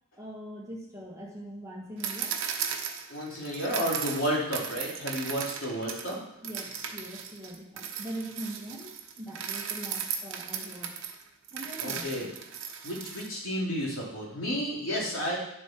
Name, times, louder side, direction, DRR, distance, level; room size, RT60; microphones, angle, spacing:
voice 1, 0.2-2.4 6.4-11.0 11.5-12.3, equal, 15° right, -4 dB, 1.7 m, -42 dB
sound 1, 2.0-6.2 6.4-13.3, right 7 dB, 60° right, 1.0 m, -36 dB
voice 2, 3.1-6.2 11.8-12.3 12.8-15.4, equal, 65° left, -4 dB, 3.4 m, -31 dB
10.5 x 7.7 x 4.6 m, 0.82 s
head